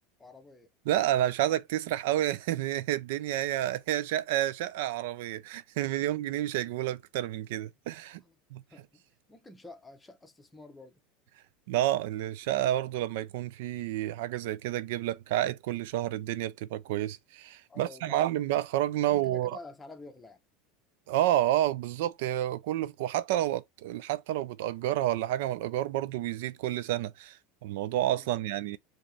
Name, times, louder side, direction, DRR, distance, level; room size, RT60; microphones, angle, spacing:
voice 1, 0.2-0.7 6.0-6.1 8.2-8.4 8.7-9.0 9.3-11.0 17.7-18.2 19.0-20.4 28.1-28.4, left 2 dB, 10° left, 0.8 m, -49 dB
voice 2, 0.9-8.2 8.5-8.6 11.7-19.6 21.1-28.8, right 13 dB, 75° right, 0.4 m, -30 dB
5.1 x 2.9 x 3.3 m
supercardioid pair, 140°, 0 cm